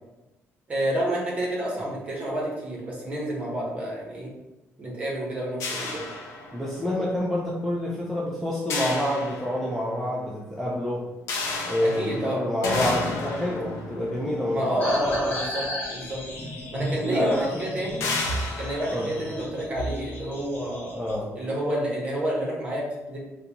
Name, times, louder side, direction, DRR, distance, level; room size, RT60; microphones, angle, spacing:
voice 1, 0.7-4.3 4.8-6.0 12.0-12.4 14.5-16.2 16.7-18.0 18.6-21.0 21.3-23.2, right 1 dB, 30° right, -3 dB, 1.0 m, -29 dB
sound 1, 5.6-7.0 8.7-10.0 11.3-15.7 16.7-16.8 17.1-17.3 18.0-20.0, left 3 dB, 80° left, 0.6 m, -32 dB
voice 2, 6.5-11.1 11.7-14.8 17.0-17.9 18.9-19.2 20.9-21.3, left 1 dB, ahead, -6 dB, 0.4 m, -28 dB
sound 2, 14.8-21.1, equal, 40° left, 1.0 m, -34 dB
3.9 x 2.2 x 2.8 m, 1.0 s
cardioid pair, 160°, 5 cm